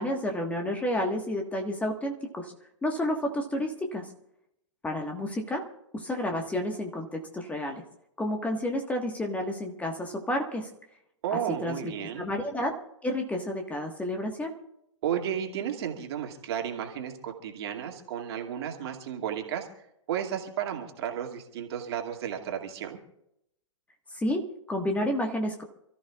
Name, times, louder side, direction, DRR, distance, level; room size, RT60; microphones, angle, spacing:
voice 1, 0.0-2.5 2.8-4.1 4.8-5.6 5.9-7.8 8.2-10.7 11.3-12.7 13.0-14.5 24.1-25.6, left 1 dB, 10° left, 3 dB, 1.5 m, -30 dB
voice 2, 11.2-12.3 15.0-19.7 20.1-23.0, right 9 dB, 55° right, 2 dB, 2.4 m, -33 dB
28.5 x 14.0 x 2.4 m, 0.79 s
figure-of-eight pair, 110°, 16 cm